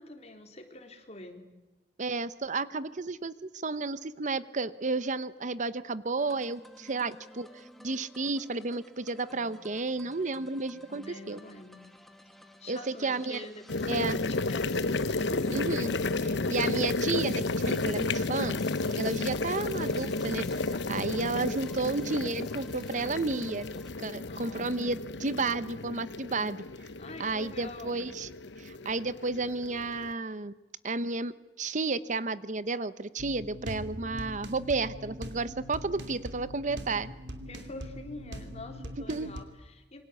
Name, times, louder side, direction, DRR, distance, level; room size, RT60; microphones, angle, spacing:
voice 1, 0.0-1.5 10.9-11.8 12.6-14.7 15.1-15.5 16.4-16.6 24.3-25.1 27.0-28.2 37.5-40.0, left 2 dB, 40° left, 4 dB, 3.9 m, -45 dB
voice 2, 2.0-7.5 7.8-11.4 12.7-13.5 13.9-14.2 15.5-15.9 16.2-18.6 18.9-23.7 24.0-26.6 27.2-28.3 28.6-30.5 30.8-31.3 31.6-37.1 39.1-39.3, right 3 dB, 45° right, 15 dB, 0.9 m, -32 dB
sound 1, 6.2-23.9, left 1 dB, ahead, 1.9 m, -53 dB
sound 2, 13.7-30.1, left 3 dB, 85° left, 0.9 m, -32 dB
sound 3, 33.2-39.4, equal, 80° right, 2.9 m, -42 dB
27.5 x 24.5 x 8.3 m, 1.1 s
head